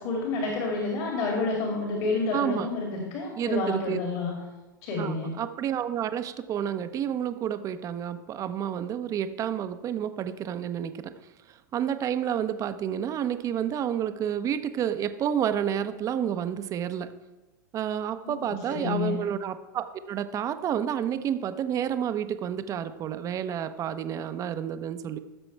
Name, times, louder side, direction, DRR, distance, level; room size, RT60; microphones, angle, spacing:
voice 1, 0.0-4.3 4.8-5.3 18.2-19.2, left 3 dB, 50° left, -2 dB, 2.5 m, -29 dB
voice 2, 2.3-2.7 3.4-4.0 5.0-11.1 11.7-17.1 17.7-25.2, right 9 dB, 30° right, 10 dB, 0.7 m, -30 dB
15.5 x 7.0 x 3.4 m, 1.1 s
hypercardioid pair, 95°, 11 cm